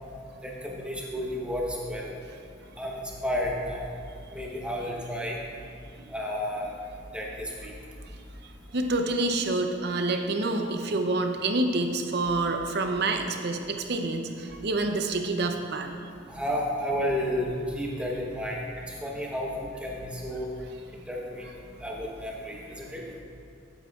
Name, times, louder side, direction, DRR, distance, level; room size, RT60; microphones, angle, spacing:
voice 1, 0.4-2.1 2.8-3.8 4.3-5.4 6.1-6.7 7.1-7.7 16.3-18.6 19.0-20.5 21.1-21.4 21.8-23.0, equal, 5° right, -2 dB, 0.9 m, -31 dB
voice 2, 8.7-15.9, right 2 dB, 55° right, 5 dB, 0.6 m, -27 dB
12.0 x 8.7 x 2.4 m, 2.4 s
head